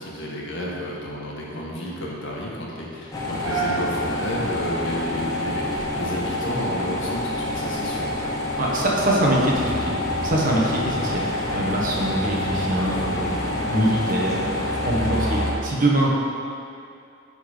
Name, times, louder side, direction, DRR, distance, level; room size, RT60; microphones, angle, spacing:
voice 1, 0.0-8.4, equal, 65° left, -4 dB, 1.5 m, -31 dB
sound 1, 3.1-15.5, left 1 dB, 20° left, 1.1 m, -27 dB
sound 2, 3.5-5.7, right 4 dB, 15° right, 1.5 m, -31 dB
voice 2, 8.6-10.0 10.2-16.1, right 1 dB, 40° right, -4 dB, 1.3 m, -24 dB
11.0 x 4.1 x 5.1 m, 2.5 s
head